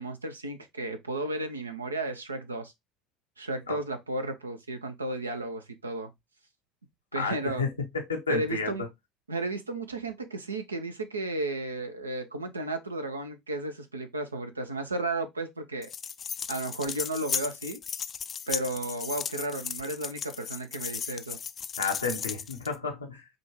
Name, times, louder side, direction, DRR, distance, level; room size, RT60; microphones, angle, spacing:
voice 1, 0.0-2.7 3.4-6.1 7.1-7.6 8.3-8.8 9.3-15.9 16.5-17.8 18.5-21.4, right 2 dB, 90° right, 0.6 m, -33 dB
voice 2, 7.1-8.8 21.8-23.2, left 4 dB, 90° left, 0.8 m, -31 dB
sound 1, 15.8-22.8, left 7 dB, 35° left, 0.3 m, -36 dB
4.9 x 2.4 x 3.0 m
figure-of-eight pair, 70°, 0 cm